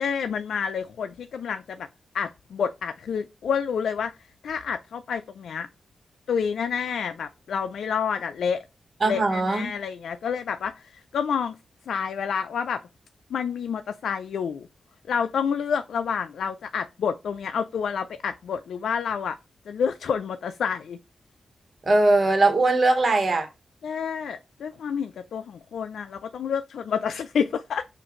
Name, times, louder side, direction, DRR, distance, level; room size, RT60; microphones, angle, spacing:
voice 1, 0.0-1.9 2.1-5.7 6.3-8.6 9.0-11.6 11.9-12.8 13.3-14.7 15.1-19.4 19.7-21.0 23.8-27.9, left 7 dB, 90° left, 0.3 m, -29 dB
voice 2, 9.0-9.7 21.9-23.5, right 2 dB, 55° right, 1.3 m, -20 dB
6.1 x 2.6 x 3.0 m
cardioid pair, 60°, 0 cm